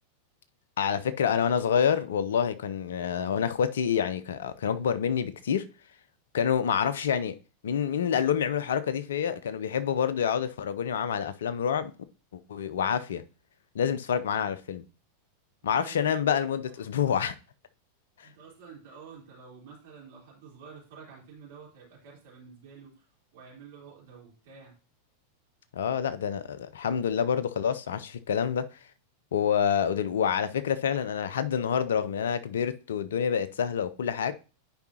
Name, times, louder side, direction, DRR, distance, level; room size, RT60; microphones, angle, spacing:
voice 1, 0.8-5.6 6.3-7.3 7.6-11.9 12.3-13.2 13.7-14.8 15.6-17.3 25.7-28.6 29.3-34.3, left 8 dB, 65° left, 0.5 m, -27 dB
voice 2, 15.6-16.4 16.8-16.9 18.2-23.1 23.3-24.8, right 6 dB, 55° right, 3.5 m, -50 dB
10.5 x 4.8 x 2.9 m
figure-of-eight pair, 90°, 0 cm